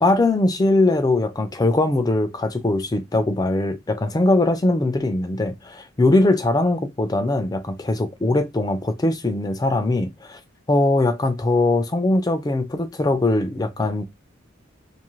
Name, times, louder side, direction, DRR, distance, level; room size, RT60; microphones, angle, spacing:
voice 1, 0.0-10.4 10.7-14.0, left 2 dB, 20° left, 0.3 m, -21 dB
2.5 x 2.4 x 3.0 m
head